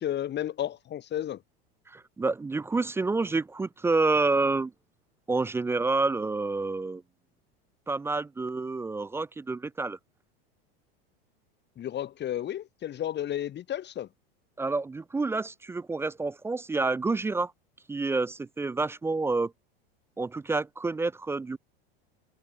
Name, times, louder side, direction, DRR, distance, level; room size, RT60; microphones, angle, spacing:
voice 1, 0.0-1.4 11.8-14.1, left 11 dB, 35° left, 2.7 m, -32 dB
voice 2, 1.9-4.7 5.3-7.0 7.9-10.0 14.6-17.5 17.9-19.5 20.2-21.6, right 3 dB, 10° right, 0.3 m, -28 dB
supercardioid pair, 110°, 30 cm